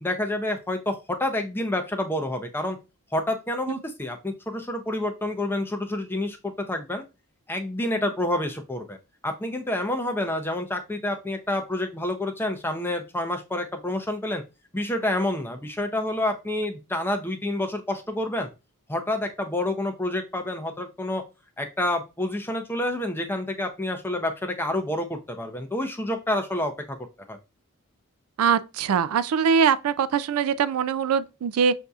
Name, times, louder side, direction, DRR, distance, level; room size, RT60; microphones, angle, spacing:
voice 1, 0.0-2.8 3.1-7.0 7.5-9.0 9.2-14.4 14.7-18.5 18.9-21.2 21.6-27.0 27.3-27.4, left 1 dB, 10° left, 0.5 m, -28 dB
voice 2, 28.4-31.7, right 7 dB, 75° right, 0.3 m, -22 dB
6.6 x 2.7 x 2.3 m
head